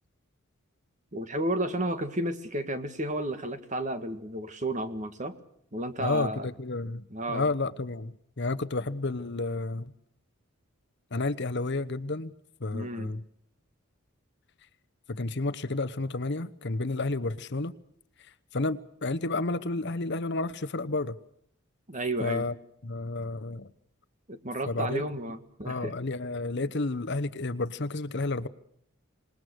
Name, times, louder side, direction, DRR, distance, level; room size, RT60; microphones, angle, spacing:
voice 1, 1.1-5.4 5.7-6.5 7.1-7.5 12.7-13.1 21.9-22.4 24.3-25.9, right 1 dB, 35° right, 9 dB, 1.9 m, -32 dB
voice 2, 6.0-9.9 11.1-12.3 12.6-13.2 15.1-17.7 18.5-21.2 22.2-22.5 22.8-23.7 24.7-25.0 25.6-28.5, left 2 dB, 55° left, 12 dB, 1.0 m, -31 dB
27.0 x 20.5 x 6.4 m, 0.69 s
head